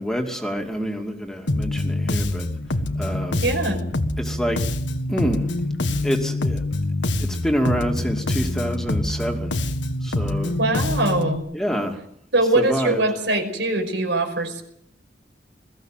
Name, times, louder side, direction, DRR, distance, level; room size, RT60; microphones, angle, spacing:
voice 1, 0.0-2.5 3.0-3.4 4.2-4.6 5.1-5.5 6.0-6.6 7.4-9.6 10.0-10.5 11.5-12.0 12.5-13.0, equal, 5° left, 2 dB, 2.6 m, -26 dB
Bass guitar, 1.5-11.4, left 2 dB, 90° left, 1.6 m, -25 dB
voice 2, 3.4-3.8 10.6-11.5 12.3-14.6, right 2 dB, 85° right, 5 dB, 5.5 m, -22 dB
22.0 x 15.0 x 9.1 m, 0.71 s
head